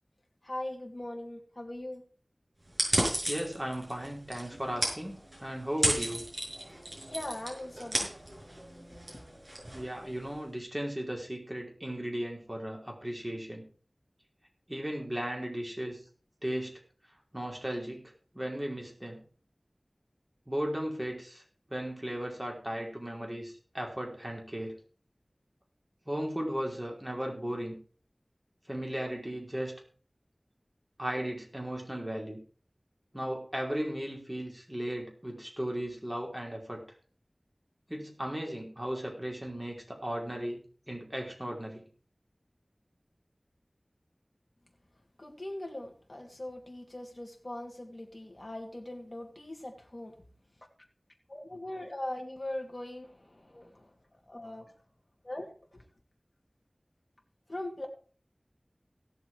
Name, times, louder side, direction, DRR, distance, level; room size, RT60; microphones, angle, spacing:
voice 1, 0.4-2.0 7.1-8.1 8.9-9.0 45.2-50.1 51.3-53.9 54.3-54.7 55.2-55.5 55.7-55.8 57.5-57.9, left 1 dB, 45° left, 1 dB, 2.6 m, -40 dB
sound 1, 2.7-10.4, right 1 dB, 40° right, 6.2 m, -34 dB
voice 2, 3.3-6.2 9.7-13.7 14.7-16.0 16.4-16.7 17.3-18.0 18.3-19.2 20.5-21.4 21.7-24.8 26.0-27.8 28.7-29.8 31.0-32.4 33.1-36.8 37.9-40.6 40.9-41.8, equal, 20° right, 0 dB, 4.8 m, -36 dB
17.0 x 7.1 x 4.7 m, 0.41 s
wide cardioid pair, 40°, 0 cm